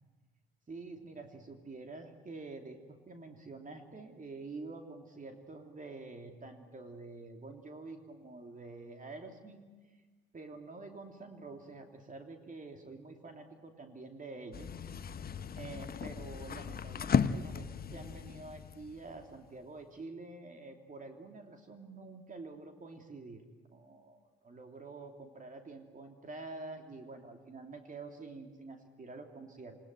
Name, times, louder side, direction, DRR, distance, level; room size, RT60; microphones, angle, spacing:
voice 1, 0.7-9.6 10.3-14.8 15.5-23.4 23.7-29.8, right 3 dB, 25° right, 4 dB, 3.0 m, -47 dB
sound 1, 14.5-19.6, left 7 dB, 30° left, 1.0 m, -35 dB
28.5 x 17.5 x 9.3 m, 1.3 s
figure-of-eight pair, 50°, 30 cm